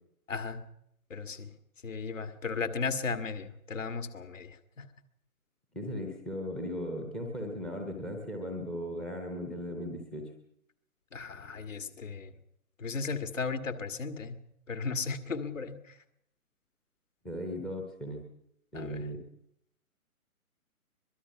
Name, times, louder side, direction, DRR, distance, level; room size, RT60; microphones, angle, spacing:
voice 1, 0.3-0.6 1.1-1.5 1.8-4.8 11.1-12.3 12.8-14.4 14.7-15.8 18.7-19.0, left 4 dB, 60° left, 8 dB, 2.1 m, -35 dB
voice 2, 5.7-10.3 17.2-18.3 18.7-19.2, equal, ahead, 2 dB, 0.7 m, -37 dB
23.0 x 22.5 x 5.8 m, 0.75 s
figure-of-eight pair, 135°, 44 cm